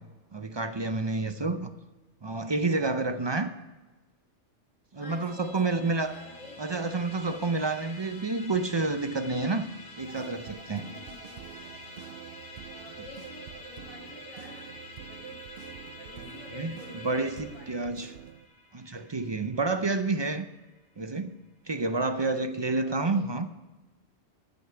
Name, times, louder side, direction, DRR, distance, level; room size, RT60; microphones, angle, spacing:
voice 1, 0.3-1.7 2.2-3.5 4.9-6.1 6.6-9.7 10.0-10.9 16.5-16.7 17.0-17.4 17.7-18.1 18.7-20.5 21.0-21.3 21.7-23.5, right 3 dB, 40° right, 9 dB, 0.4 m, -29 dB
voice 2, 4.9-6.6 10.8-12.2 12.7-14.7 15.0-15.4 16.0-17.9 22.1-23.3, left 2 dB, 30° left, -6 dB, 4.0 m, -50 dB
Musical instrument, 5.2-20.8, left 2 dB, 65° left, 3.2 m, -48 dB
sound 1, 10.0-18.5, right 10 dB, 65° right, 0.7 m, -47 dB
14.0 x 6.6 x 5.7 m, 1.2 s
omnidirectional pair, 1.3 m